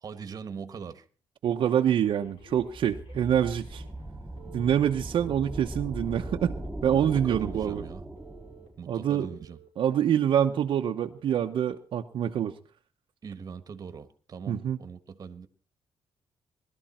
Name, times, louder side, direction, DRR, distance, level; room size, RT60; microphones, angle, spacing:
voice 1, 0.0-1.0 6.9-8.0 8.8-9.6 13.2-15.5, right 6 dB, 40° right, 10 dB, 1.4 m, -41 dB
voice 2, 1.4-3.8 4.5-6.5 6.8-7.8 8.9-9.3 9.8-12.5 14.5-14.8, right 9 dB, 65° right, 3 dB, 0.9 m, -26 dB
Telephone, 1.6-4.1 4.4-4.6 5.1-5.6 6.1-6.7 7.1-7.7 8.2-8.7 9.2-9.7 10.2-10.7 11.2-11.5, right 8 dB, 75° left, 6.2 m, -54 dB
sound 1, 2.3-8.8, right 1 dB, ahead, 2.3 m, -39 dB
20.0 x 12.5 x 4.3 m, 0.38 s
cardioid pair, 135°, 9 cm